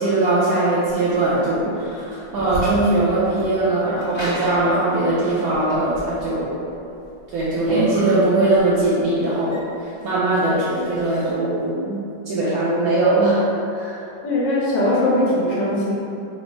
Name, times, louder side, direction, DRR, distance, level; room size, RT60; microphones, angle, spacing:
voice 1, 0.0-6.6 7.3-12.0 12.3-14.0, right 2 dB, 65° right, -10 dB, 1.0 m, -20 dB
sound 1, 0.9-11.3, right 1 dB, 25° left, 0.6 m, -33 dB
voice 2, 14.2-15.9, left 1 dB, 80° left, -6 dB, 1.6 m, -20 dB
4.1 x 2.0 x 4.5 m, 2.7 s
omnidirectional pair, 1.9 m